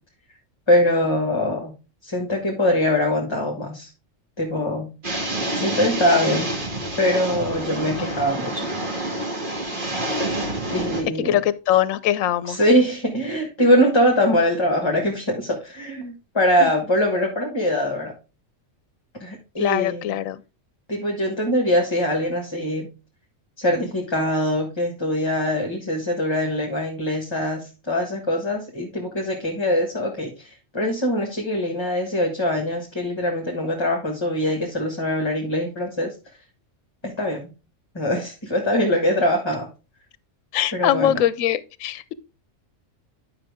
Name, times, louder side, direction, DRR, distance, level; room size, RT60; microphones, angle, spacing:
voice 1, 0.7-1.7 2.0-3.9 4.4-4.9 5.5-6.5 7.0-8.7 10.7-11.4 12.4-18.1 19.2-20.1 20.9-22.9 23.6-36.1 37.0-37.5 37.9-39.7 40.7-41.2, left 1 dB, 20° left, 1.6 m, -23 dB
sound 1, 5.0-11.0, right 1 dB, 40° right, 2.1 m, -27 dB
voice 2, 11.2-12.6 16.6-16.7 19.6-20.4 40.5-42.1, left 12 dB, 85° left, 1.0 m, -22 dB
10.5 x 5.8 x 3.5 m
omnidirectional pair, 1.4 m